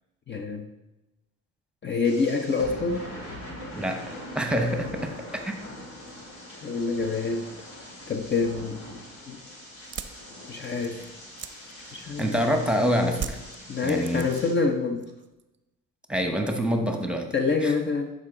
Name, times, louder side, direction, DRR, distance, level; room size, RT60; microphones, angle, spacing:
voice 1, 0.3-0.7 1.8-3.1 6.6-7.5 8.1-9.0 9.3-9.4 10.5-11.1 11.9-12.4 13.7-15.1 17.3-18.1, left 4 dB, 35° left, 4 dB, 0.7 m, -26 dB
sound 1, 2.0-14.5, left 1 dB, 85° left, 2.7 m, -42 dB
voice 2, 3.7-5.5 12.2-13.4 13.8-14.2 16.1-17.3 17.6-17.7, equal, 5° right, 4 dB, 1.1 m, -26 dB
sound 2, 9.8-12.5 13.1-14.7 15.0-15.5, right 7 dB, 40° right, 0.6 m, -39 dB
11.5 x 4.9 x 3.8 m, 1.0 s
cardioid pair, 90°, 30 cm